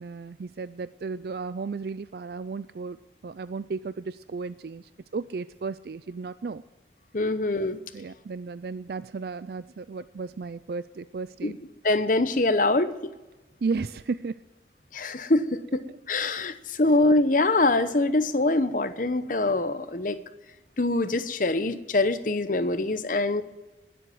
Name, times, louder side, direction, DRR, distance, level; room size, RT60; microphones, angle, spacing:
voice 1, 0.0-6.6 7.9-11.6 13.6-14.4, right 4 dB, 55° right, 15 dB, 0.4 m, -34 dB
voice 2, 7.1-7.8 11.4-11.5 11.8-13.1 14.9-15.8 16.1-20.2 20.8-23.4, left 2 dB, 45° left, 11 dB, 0.9 m, -24 dB
20.5 x 7.9 x 7.8 m, 1.1 s
head